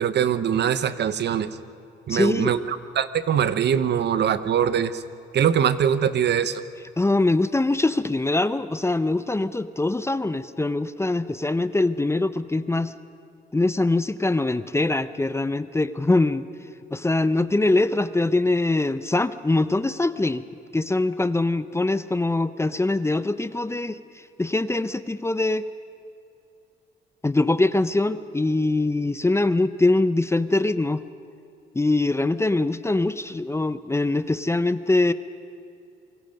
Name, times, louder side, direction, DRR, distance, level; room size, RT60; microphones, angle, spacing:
voice 1, 0.0-1.5 2.1-5.0 5.3-6.6, right 8 dB, 60° right, 13 dB, 1.0 m, -22 dB
voice 2, 2.1-2.5 7.0-12.9 13.5-16.5 16.9-20.4 20.7-25.6 27.2-31.1 31.7-35.1, left 2 dB, 15° left, 13 dB, 0.7 m, -23 dB
27.0 x 23.5 x 5.3 m, 2.5 s
cardioid pair, 90°, 20 cm